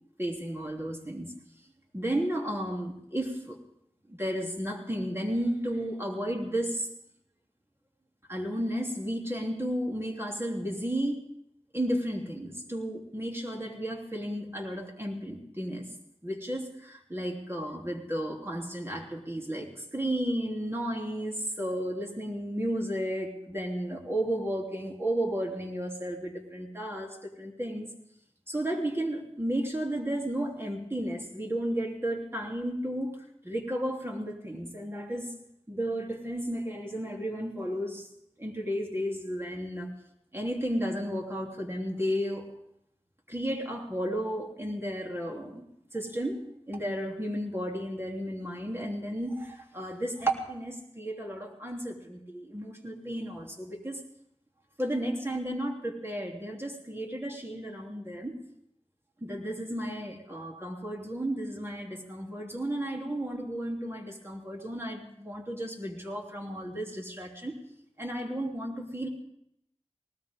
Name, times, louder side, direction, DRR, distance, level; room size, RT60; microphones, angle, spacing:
voice 1, 0.2-1.3 1.9-3.6 4.1-6.9 8.3-11.2 11.7-15.9 16.2-27.9 28.5-33.1 33.4-35.3 35.7-38.1 38.4-39.9 40.3-42.4 43.3-45.6 45.9-46.4 46.7-54.0 54.8-58.3 59.2-67.5 68.0-69.1, right 1 dB, 20° right, 0 dB, 3.2 m, -33 dB
20.0 x 19.0 x 3.7 m, 0.74 s
wide cardioid pair, 40°, 11 cm